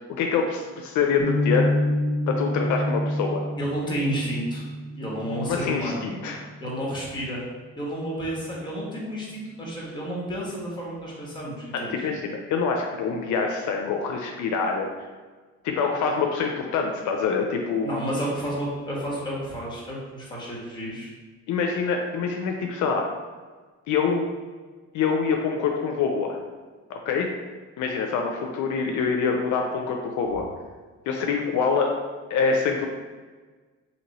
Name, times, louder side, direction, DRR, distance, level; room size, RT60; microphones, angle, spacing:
voice 1, 0.1-1.7 2.3-3.4 5.5-6.4 11.7-14.9 15.6-17.9 21.5-23.1 23.9-24.3 24.9-26.4 27.1-27.3 27.8-30.5 31.1-32.0 32.3-32.9, left 5 dB, 75° left, 2 dB, 0.5 m, -25 dB
sound 1, 1.2-7.3, left 1 dB, 60° right, 1.3 m, -28 dB
voice 2, 3.6-4.6 5.0-6.0 6.6-7.4 7.7-12.1 17.8-21.1, equal, 15° left, -4 dB, 1.4 m, -31 dB
2.9 x 2.8 x 4.1 m, 1.4 s
cardioid pair, 90°, 30 cm